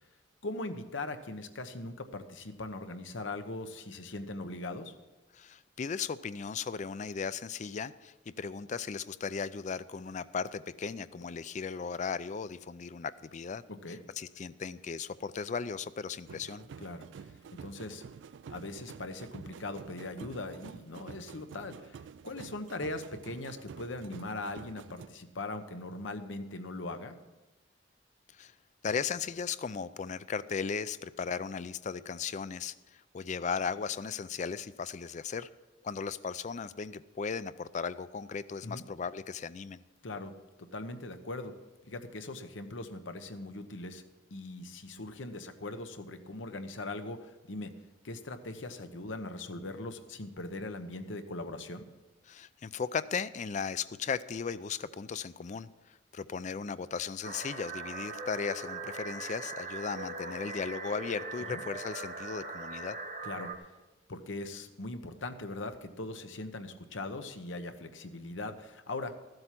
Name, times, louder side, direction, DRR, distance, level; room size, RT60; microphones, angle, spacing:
voice 1, 0.4-4.9 13.8-14.0 16.8-17.3 17.5-18.0 18.5-27.2 38.6-38.8 40.0-40.3 40.7-41.5 41.8-44.0 44.3-47.7 48.0-51.9 61.5-61.6 63.2-63.5 64.1-69.1, left 2 dB, 85° left, 8 dB, 1.0 m, -40 dB
voice 2, 5.3-13.6 13.9-16.7 28.3-28.5 28.8-35.5 35.8-39.8 52.3-63.0, left 5 dB, 40° left, 16 dB, 0.4 m, -36 dB
sound 1, 16.3-25.1, right 6 dB, 70° right, 0.3 m, -49 dB
sound 2, 57.2-63.5, right 3 dB, 45° right, 1.2 m, -40 dB
14.5 x 7.8 x 5.9 m, 1.1 s
head